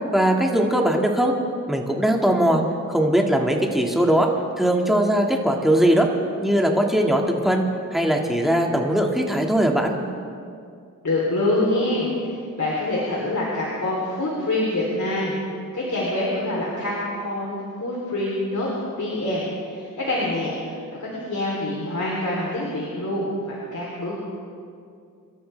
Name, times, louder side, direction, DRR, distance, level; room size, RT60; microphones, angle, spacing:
voice 1, 0.1-1.3 1.7-2.6 2.9-4.3 4.6-6.1 6.4-10.0, right 1 dB, ahead, 0 dB, 2.0 m, -20 dB
voice 2, 11.0-15.4 15.7-18.7 19.0-24.3, left 1 dB, 60° left, -5 dB, 3.4 m, -26 dB
26.5 x 13.0 x 3.4 m, 2.3 s
wide cardioid pair, 70°, 34 cm